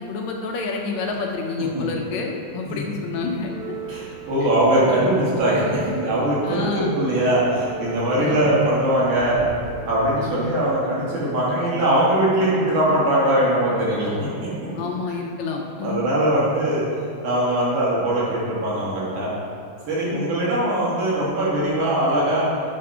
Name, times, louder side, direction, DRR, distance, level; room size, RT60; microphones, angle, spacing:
voice 1, 0.0-3.7 4.4-4.5 6.4-7.0 8.2-8.5 10.2-10.6 14.7-16.0 20.0-20.4, left 4 dB, 75° left, 1 dB, 1.8 m, -29 dB
sound 1, 3.2-12.6 13.5-14.6 14.9-15.1 16.0-16.1, right 5 dB, 65° right, 1.5 m, -39 dB
voice 2, 3.9-9.4 9.9-14.5 15.8-16.8 17.2-19.3 19.9-22.5, right 1 dB, 80° right, -7 dB, 3.2 m, -21 dB
8.4 x 3.8 x 5.4 m, 2.3 s
omnidirectional pair, 3.4 m